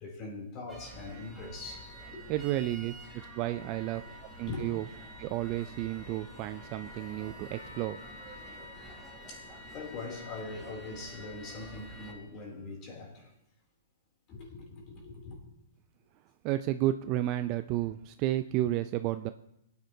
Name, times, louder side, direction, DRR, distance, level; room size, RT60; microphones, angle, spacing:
voice 1, 0.0-2.2 4.5-4.7 9.3-13.3 14.3-15.4, left 3 dB, 30° left, 2.9 m, -42 dB
sound 1, 0.7-12.1, equal, 5° right, 3.0 m, -48 dB
voice 2, 2.3-4.0 4.4-4.8 5.2-8.0 16.4-19.3, right 14 dB, 35° right, 0.3 m, -32 dB
Percussion, 7.5-11.9 12.5-12.6, left 2 dB, 80° left, 1.5 m, -57 dB
26.5 x 9.3 x 2.7 m
hypercardioid pair, 155°, 0 cm